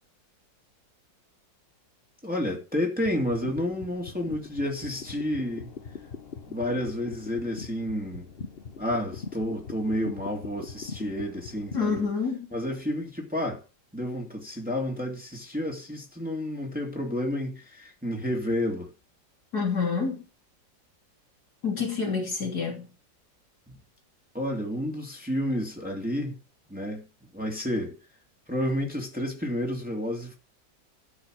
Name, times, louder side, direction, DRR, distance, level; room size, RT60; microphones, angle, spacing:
voice 1, 2.2-5.7 6.4-8.3 8.8-12.1 12.5-13.6 13.9-18.9 23.7-23.8 24.3-26.4 26.7-27.1 27.3-27.9 28.5-30.3, left 1 dB, 5° right, 2.7 m, -30 dB
sound 1, 3.0-12.1, left 5 dB, 40° left, 1.0 m, -42 dB
voice 2, 11.7-12.5 19.5-20.2 21.6-22.9, left 5 dB, 55° left, 3.7 m, -28 dB
13.0 x 5.6 x 6.3 m
omnidirectional pair, 2.0 m